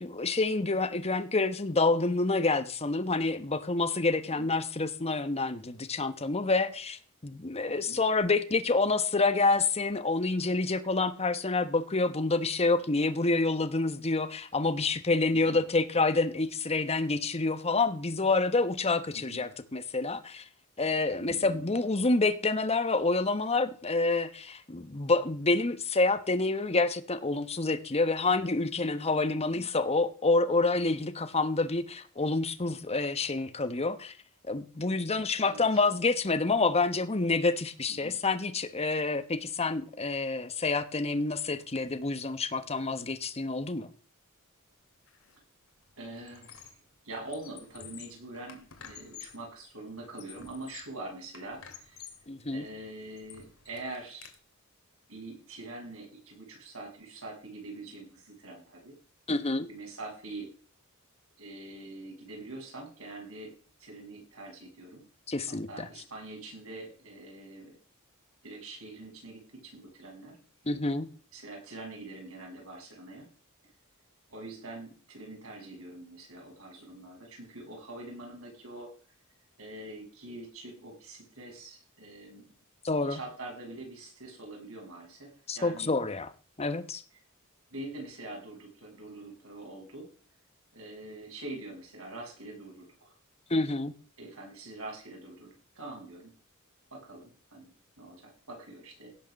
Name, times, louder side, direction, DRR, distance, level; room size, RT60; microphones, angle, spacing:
voice 1, 0.0-20.4 20.8-34.1 34.5-43.9 52.3-52.6 59.3-59.7 65.3-65.9 70.7-71.1 82.8-83.2 85.5-86.3 86.6-87.0 93.5-93.9, left 3 dB, 30° left, 1.1 m, -28 dB
voice 2, 7.7-8.0 15.3-15.6 19.1-19.4 21.2-21.7 29.5-29.6 35.4-35.8 37.9-38.1 46.0-46.8 47.0-52.0 52.5-54.3 55.1-58.9 59.7-60.5 61.4-63.5 63.8-65.0 65.7-67.8 68.4-70.4 71.3-73.3 74.3-78.9 79.6-82.4 83.1-85.9 87.7-90.1 90.7-93.1 93.6-93.7 94.2-96.3 96.9-99.3, right 2 dB, 75° right, 7.0 m, -44 dB
Squeak, 45.1-45.4 45.7-46.9 47.2-49.5 50.0-51.0 51.3-52.3 52.8-54.3, left 8 dB, 70° left, 2.5 m, -50 dB
17.0 x 6.6 x 6.4 m
head